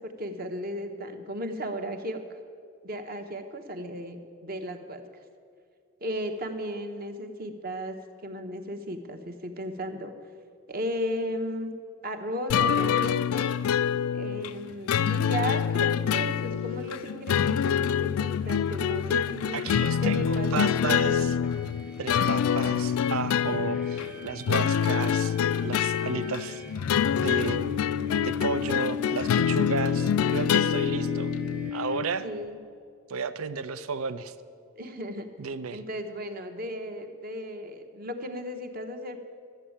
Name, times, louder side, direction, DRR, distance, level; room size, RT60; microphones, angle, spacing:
voice 1, 0.0-2.2 2.8-5.0 6.0-10.1 10.7-11.7 12.0-13.6 14.1-19.6 20.0-21.3 32.2-32.6 34.8-35.3 35.7-39.2, equal, 40° right, 6 dB, 1.0 m, -35 dB
sound 1, 12.5-31.7, left 8 dB, 80° left, 0.3 m, -26 dB
voice 2, 19.5-21.3 22.0-25.3 25.6-26.6 27.1-27.6 28.2-31.3 31.7-32.3 33.1-34.3 35.4-35.8, right 5 dB, 80° right, 14 dB, 0.6 m, -33 dB
sound 2, 21.4-32.5, left 6 dB, 5° right, 0.8 m, -36 dB
13.0 x 8.0 x 8.7 m, 2.2 s
head